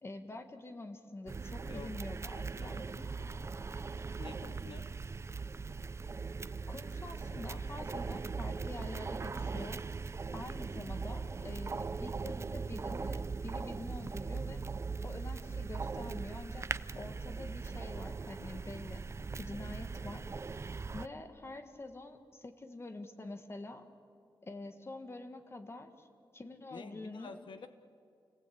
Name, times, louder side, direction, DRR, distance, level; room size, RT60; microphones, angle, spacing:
voice 1, 0.0-2.8 6.7-9.8 10.3-14.7 15.0-16.7 16.9-19.1 19.4-20.3 20.6-23.9 24.4-26.1 26.3-27.7, left 2 dB, 30° left, 7 dB, 1.6 m, -46 dB
sound 1, 1.3-21.1, right 4 dB, 35° right, 0.5 m, -40 dB
voice 2, 2.6-3.5 4.2-4.9 26.7-27.7, left 5 dB, 75° left, 9 dB, 0.9 m, -50 dB
29.0 x 18.0 x 8.7 m, 2.5 s
wide cardioid pair, 145°, 8 cm